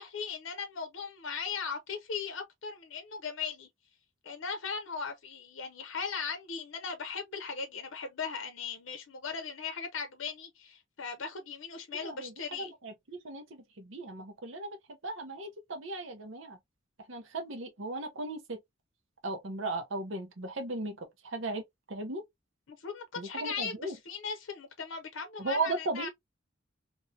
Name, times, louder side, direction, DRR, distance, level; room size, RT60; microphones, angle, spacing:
voice 1, 0.0-3.7 4.2-12.7 22.7-26.1, left 5 dB, 70° left, 0.6 m, -38 dB
voice 2, 12.0-14.8 15.0-16.6 17.1-18.6 19.2-22.2 23.2-24.0 25.4-26.1, right 2 dB, 70° right, 0.9 m, -37 dB
3.0 x 2.6 x 2.7 m
head